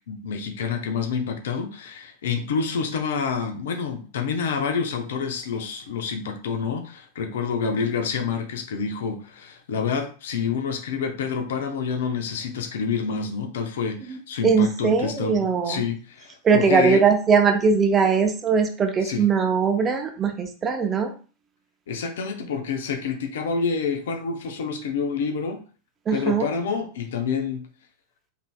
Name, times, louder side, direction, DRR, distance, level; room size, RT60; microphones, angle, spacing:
voice 1, 0.1-17.0 19.0-19.2 21.9-25.6 26.1-27.6, left 5 dB, 60° left, 5 dB, 0.7 m, -28 dB
voice 2, 14.1-15.8 16.4-21.1 26.1-26.5, right 5 dB, 20° right, 5 dB, 0.7 m, -21 dB
5.3 x 2.7 x 2.2 m, 0.38 s
figure-of-eight pair, 90°, 0 cm